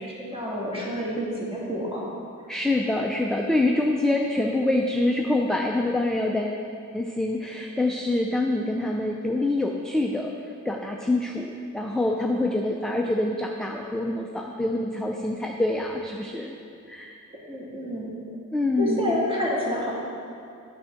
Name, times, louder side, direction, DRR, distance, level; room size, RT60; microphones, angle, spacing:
voice 1, 0.0-2.1 17.3-18.1 18.8-19.9, equal, 15° right, -5 dB, 1.7 m, -29 dB
voice 2, 2.5-6.6 6.9-10.3 10.7-16.5 16.9-17.2 18.5-19.2, left 2 dB, ahead, 0 dB, 0.3 m, -25 dB
8.9 x 3.5 x 6.4 m, 2.5 s
wide cardioid pair, 135°, 31 cm